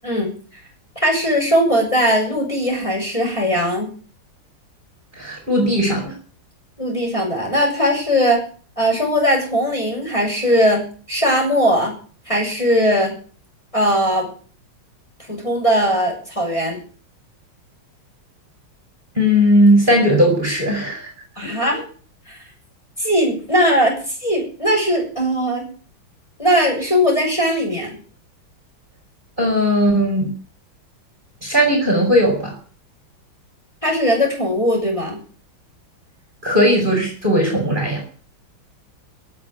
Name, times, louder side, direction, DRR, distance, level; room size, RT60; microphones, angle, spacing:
voice 1, 0.0-0.3 1.0-3.9 6.8-8.4 8.8-11.9 12.3-13.1 13.7-14.3 15.3-16.8 21.4-21.8 22.3-22.4 23.0-25.7 26.4-28.0 33.8-35.2, equal, 15° left, -1 dB, 7.1 m, -19 dB
voice 2, 5.2-6.1 19.2-21.1 21.4-21.5 29.4-30.3 31.4-32.5 36.4-38.0, equal, 20° right, 2 dB, 5.2 m, -17 dB
18.0 x 7.6 x 9.4 m, 0.42 s
omnidirectional pair, 2.3 m